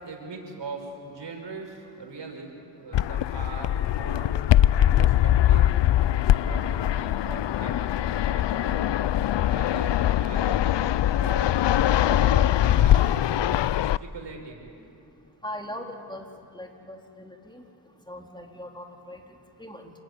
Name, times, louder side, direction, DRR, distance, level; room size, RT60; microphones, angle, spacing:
voice 1, 0.0-2.5 2.7-4.3 4.8-5.7 6.1-9.0 9.6-10.7 11.1-11.5 11.8-13.1 13.8-14.6, right 4 dB, 85° right, 2 dB, 5.6 m, -41 dB
Fixed-wing aircraft airplane, 2.9-14.0, left 12 dB, 80° left, 0.6 m, -22 dB
voice 2, 15.4-16.3 16.5-17.6 18.1-19.9, left 1 dB, 10° left, 1 dB, 3.9 m, -40 dB
28.0 x 22.0 x 9.5 m, 2.5 s
cardioid pair, 65°, 42 cm